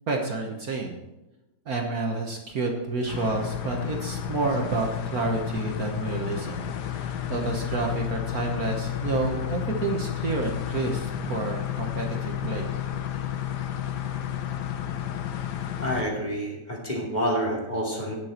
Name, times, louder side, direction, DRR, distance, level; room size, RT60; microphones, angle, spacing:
voice 1, 0.1-1.0 1.7-6.7 6.9-12.7, right 3 dB, 55° right, 1 dB, 1.5 m, -29 dB
sound 1, 3.1-16.0, left 11 dB, 65° left, 1.3 m, -31 dB
voice 2, 15.8-18.1, equal, 25° left, -1 dB, 2.7 m, -28 dB
18.5 x 6.8 x 4.4 m, 1.0 s
omnidirectional pair, 2.0 m